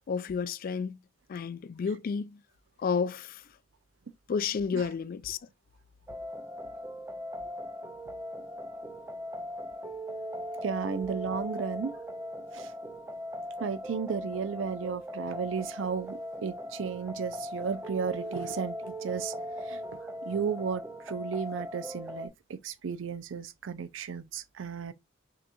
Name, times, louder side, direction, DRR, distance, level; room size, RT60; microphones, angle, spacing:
voice 1, 0.1-1.0 1.3-2.4 2.8-3.4 4.3-5.4, left 6 dB, 50° left, 0.3 m, -31 dB
sound 1, 6.1-22.3, equal, 15° right, 0.5 m, -39 dB
voice 2, 10.6-11.9 12.5-12.7 13.6-19.3 19.6-19.8 20.3-24.9, right 6 dB, 75° right, 0.5 m, -34 dB
6.1 x 2.9 x 2.4 m
head